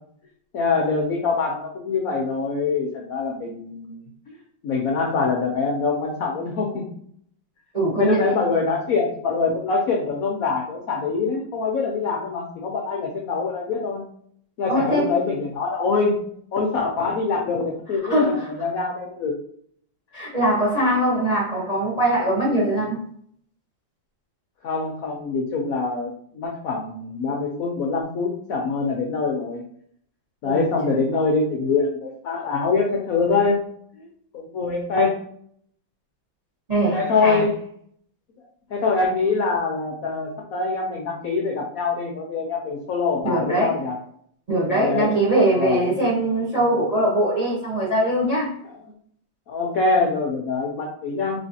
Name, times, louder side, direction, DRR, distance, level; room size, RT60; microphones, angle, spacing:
voice 1, 0.5-4.0 4.3-4.4 4.6-6.9 8.0-14.0 14.6-16.2 16.5-18.2 18.5-19.4 24.6-29.6 30.4-33.6 34.0-34.1 34.3-35.2 36.9-37.6 38.7-43.9 44.7-45.1 45.5-46.0 48.6-48.8 49.5-51.4, left 4 dB, 70° left, 0 dB, 0.8 m, -24 dB
voice 2, 7.7-8.3 14.7-15.1 18.0-18.5 20.1-23.0 30.4-31.0 36.7-37.4 43.2-43.8 44.5-48.6, right 1 dB, 30° right, -5 dB, 0.7 m, -22 dB
4.3 x 3.1 x 2.7 m, 0.63 s
omnidirectional pair, 2.2 m